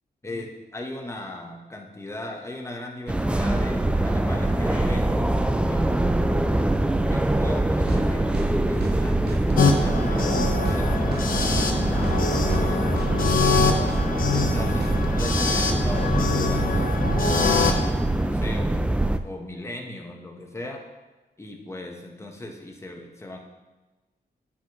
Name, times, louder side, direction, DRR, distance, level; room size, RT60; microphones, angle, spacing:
voice 1, 0.2-6.5 7.1-14.1 14.4-14.9 15.1-17.0 17.6-19.0 19.2-20.8 21.4-23.4, left 1 dB, 15° left, 1 dB, 1.0 m, -38 dB
sound 1, 3.1-19.2, right 1 dB, 5° right, 0.3 m, -23 dB
sound 2, 7.9-8.0 8.3-8.5 8.8-9.0 9.3-9.9 10.2-10.3 10.6-10.8 11.1-11.7 12.0-12.2 12.5-12.7 13.0-13.6 13.9-14.0 14.3-14.5 14.8-15.2, right 4 dB, 75° right, 0.8 m, -35 dB
sound 3, 9.6-17.9, left 4 dB, 55° left, 0.7 m, -25 dB
9.5 x 5.9 x 3.0 m, 1.2 s
wide cardioid pair, 115°, 17 cm